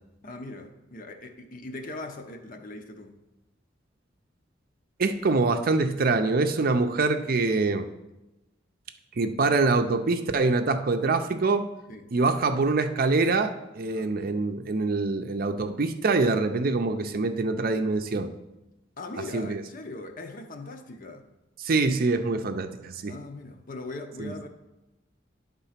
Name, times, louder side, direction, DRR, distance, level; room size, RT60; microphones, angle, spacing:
voice 1, 0.2-3.2 11.9-12.1 13.8-14.1 19.0-21.3 23.1-24.5, left 2 dB, 50° left, 5 dB, 0.8 m, -40 dB
voice 2, 5.0-7.9 9.2-11.7 12.1-18.3 19.3-19.6 21.6-23.1 24.2-24.3, right 3 dB, 50° right, 8 dB, 0.5 m, -25 dB
10.0 x 3.7 x 5.7 m, 0.99 s
head